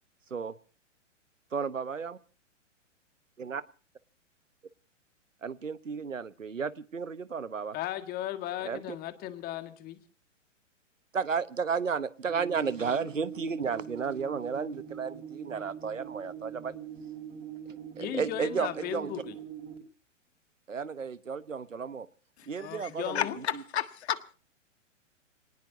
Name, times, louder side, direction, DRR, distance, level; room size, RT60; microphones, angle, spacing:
voice 1, 1.5-2.2 3.4-3.6 5.4-7.8 8.6-9.0 11.1-16.7 17.7-19.1 20.7-22.1 22.5-23.3 23.5-23.6, right 6 dB, 85° right, 1.1 m, -33 dB
voice 2, 7.7-10.0 18.0-19.4 22.6-23.4, left 12 dB, 25° left, 1.9 m, -36 dB
sound 1, 12.3-19.8, right 9 dB, 35° right, 5.0 m, -43 dB
voice 3, 22.6-24.3, left 10 dB, 60° left, 1.6 m, -33 dB
27.5 x 19.0 x 2.7 m
figure-of-eight pair, 115°, 37 cm